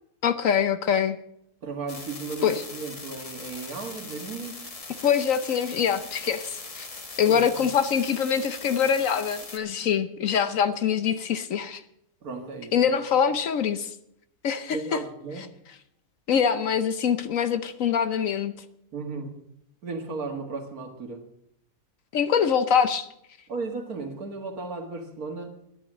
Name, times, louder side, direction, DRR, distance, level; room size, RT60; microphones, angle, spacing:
voice 1, 0.2-1.2 2.4-2.6 5.0-6.9 7.2-11.8 12.7-13.9 14.4-15.0 16.3-18.5 22.1-23.1, left 7 dB, 60° left, 11 dB, 1.1 m, -24 dB
voice 2, 1.6-4.6 7.3-7.4 12.2-12.7 14.7-15.5 18.9-19.3 19.8-21.2 23.5-25.6, right 4 dB, 65° right, 4 dB, 2.3 m, -35 dB
sound 1, 1.9-9.6, left 3 dB, 25° left, 1.0 m, -40 dB
11.5 x 10.5 x 7.4 m, 0.74 s
omnidirectional pair, 1.7 m